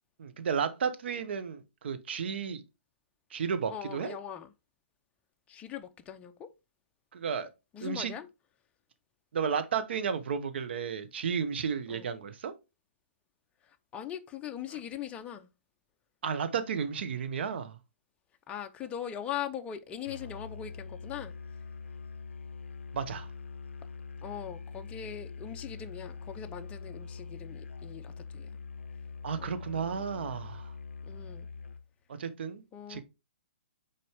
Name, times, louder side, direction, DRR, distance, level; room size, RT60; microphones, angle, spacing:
voice 1, 0.2-2.6 3.3-4.2 7.1-7.5 7.8-8.1 9.3-12.5 16.2-17.8 22.9-23.3 29.2-30.7 32.2-32.6 32.9-33.0, right 6 dB, 65° right, 1.0 m, -33 dB
voice 2, 3.7-4.5 5.5-6.5 7.7-8.3 11.9-12.1 13.9-15.5 18.5-21.3 24.2-28.5 29.4-30.4 31.1-31.5 32.7-33.0, left 9 dB, 20° left, 0.7 m, -41 dB
Musical instrument, 20.0-31.9, left 5 dB, 90° left, 0.4 m, -43 dB
6.6 x 4.2 x 3.5 m
hypercardioid pair, 140°, 6 cm